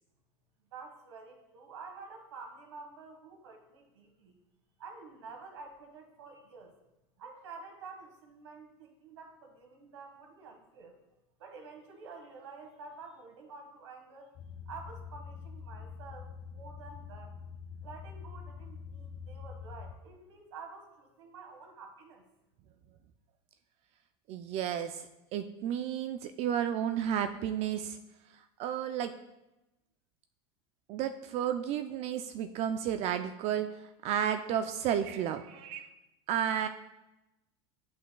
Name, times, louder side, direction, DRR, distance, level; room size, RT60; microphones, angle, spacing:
voice 1, 0.7-4.4 4.8-6.8 7.2-11.0 11.4-14.3 14.7-17.3 17.8-22.2, right 4 dB, 90° right, 3 dB, 1.5 m, -49 dB
sound 1, 14.4-19.9, left 6 dB, 45° left, 0.5 m, -45 dB
voice 2, 24.3-28.0 28.6-29.1 30.9-35.9 36.3-36.7, right 9 dB, 50° right, 8 dB, 0.4 m, -32 dB
9.2 x 6.0 x 2.3 m, 0.97 s
supercardioid pair, 105°, 14 cm